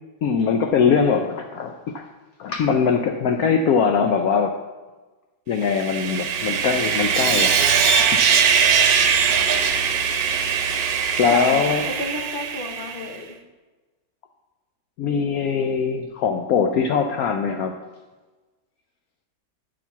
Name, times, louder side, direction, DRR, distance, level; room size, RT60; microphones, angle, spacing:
voice 1, 0.2-2.1 2.4-4.6 5.5-7.5 8.1-8.5 11.2-11.9 15.0-17.7, left 6 dB, 80° left, 5 dB, 0.8 m, -21 dB
Sawing, 5.6-13.1, right 6 dB, 70° right, 1.3 m, -21 dB
voice 2, 11.3-13.3, left 3 dB, 40° left, 4 dB, 0.8 m, -32 dB
9.7 x 4.5 x 6.9 m, 1.2 s
omnidirectional pair, 2.1 m